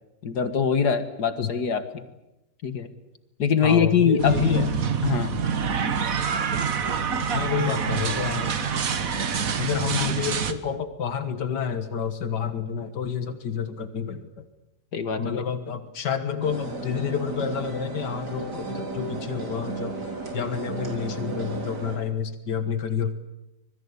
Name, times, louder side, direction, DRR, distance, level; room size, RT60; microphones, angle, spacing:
voice 1, 0.2-2.0 2.6-2.9 3.4-4.4 5.0-5.4 14.9-15.4, left 6 dB, 75° left, 10 dB, 2.2 m, -23 dB
voice 2, 3.6-4.8 7.3-8.5 9.6-14.5 15.2-20.0 20.3-23.1, left 7 dB, 90° left, 10 dB, 2.1 m, -29 dB
sound 1, 4.2-10.5, right 6 dB, 55° right, 1.8 m, -26 dB
sound 2, 16.4-22.0, right 3 dB, 75° right, 4.2 m, -34 dB
26.0 x 21.5 x 8.5 m, 0.91 s
omnidirectional pair, 1.8 m